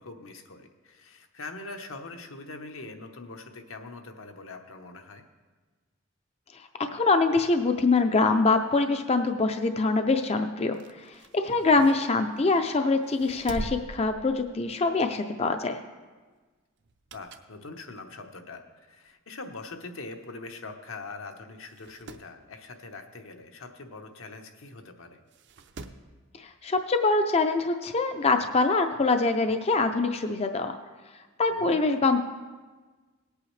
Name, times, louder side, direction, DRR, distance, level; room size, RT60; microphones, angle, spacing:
voice 1, 0.0-5.2 11.6-11.9 17.1-18.6 18.9-25.2 31.5-31.8, left 3 dB, 80° left, 5 dB, 1.0 m, -43 dB
voice 2, 6.5-15.8 26.4-30.8 31.4-32.2, left 3 dB, 30° left, 6 dB, 0.4 m, -24 dB
sound 1, 10.6-12.6 13.0-14.9 15.3-15.5 16.8-17.6 18.1-18.2 19.1-19.2 19.4-19.5 19.7-19.8 20.6-20.8 21.1-21.2 21.6-22.3 24.2-24.3 25.3-26.1 27.4-27.5, right 2 dB, 60° right, 0.6 m, -43 dB
18.5 x 8.4 x 3.2 m, 1.4 s
head